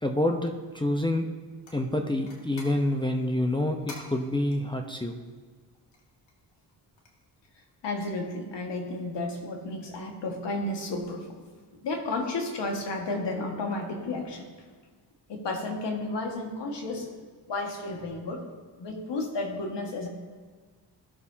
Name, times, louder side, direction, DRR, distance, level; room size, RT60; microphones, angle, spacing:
voice 1, 0.0-1.3 1.7-5.2, left 1 dB, 10° left, 3 dB, 0.8 m, -27 dB
sound 1, 1.6-8.7, left 2 dB, 90° left, 2.0 m, -52 dB
voice 2, 7.8-11.4 11.8-14.5 15.3-17.1 17.5-18.4 18.8-20.1, left 2 dB, 70° left, 1 dB, 1.9 m, -32 dB
16.0 x 6.7 x 2.9 m, 1.5 s
cardioid pair, 75°, 44 cm